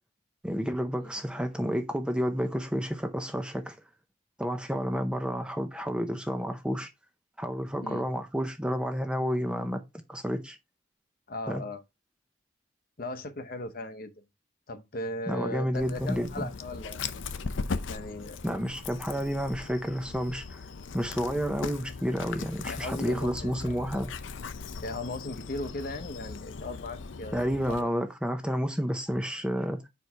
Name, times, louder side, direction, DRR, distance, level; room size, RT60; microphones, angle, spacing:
voice 1, 0.4-3.8 4.4-6.9 7.4-9.8 10.1-10.6 11.5-11.7 15.3-16.5 18.4-20.7 20.9-24.1 27.3-29.8, equal, 5° right, 0.6 m, -30 dB
voice 2, 11.3-11.8 13.0-14.1 14.7-17.0 17.9-18.4 22.7-23.7 24.8-27.5 27.8-27.9, left 2 dB, 45° left, 0.9 m, -37 dB
Dog, 15.7-27.8, left 4 dB, 70° left, 0.6 m, -39 dB
4.8 x 4.7 x 5.5 m
head